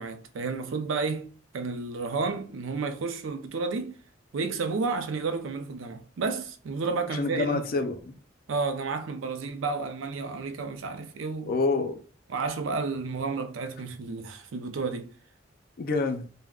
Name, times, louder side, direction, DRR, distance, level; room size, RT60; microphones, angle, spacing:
voice 1, 0.0-4.0 4.3-7.6 8.5-11.5 12.3-15.1, right 4 dB, 85° right, 0.4 m, -31 dB
voice 2, 7.1-8.1 11.4-12.0 15.8-16.2, left 3 dB, 50° left, 0.4 m, -27 dB
3.5 x 2.1 x 2.3 m
head